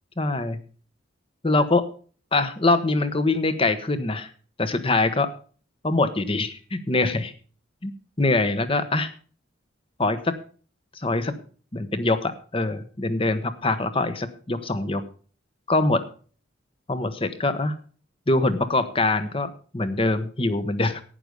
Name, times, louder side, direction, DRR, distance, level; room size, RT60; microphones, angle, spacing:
voice 1, 0.2-0.6 1.4-1.9 2.3-4.3 4.6-5.3 5.8-7.3 7.8-7.9 8.2-9.1 10.0-10.4 11.0-11.3 11.7-15.0 15.7-16.0 16.9-17.7 18.3-21.0, left 2 dB, 25° left, 11 dB, 1.1 m, -23 dB
11.5 x 9.5 x 5.3 m, 0.40 s
head